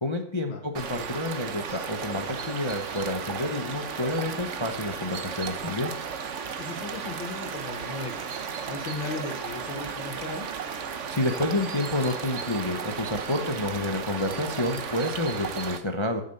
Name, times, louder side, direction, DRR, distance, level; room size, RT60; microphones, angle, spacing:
voice 1, 0.0-5.9 11.1-16.2, left 2 dB, 35° left, 4 dB, 0.4 m, -29 dB
sound 1, 0.7-15.8, right 6 dB, 50° right, 1.0 m, -34 dB
voice 2, 6.6-8.3 8.6-10.5, left 3 dB, 80° left, 2 dB, 2.0 m, -36 dB
9.5 x 7.8 x 6.6 m, 0.67 s
omnidirectional pair, 2.1 m